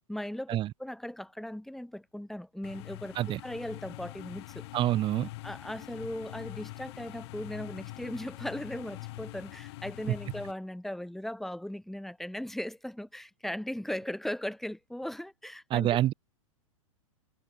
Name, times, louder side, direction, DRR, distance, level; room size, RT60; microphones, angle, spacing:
voice 1, 0.1-4.7 5.4-15.9, left 1 dB, ahead, 3.8 m, -38 dB
sound 1, 2.6-10.5, left 20 dB, 50° left, 6.3 m, -44 dB
voice 2, 4.7-5.3 15.7-16.1, right 13 dB, 30° right, 2.5 m, -26 dB
figure-of-eight pair, 100°, 18 cm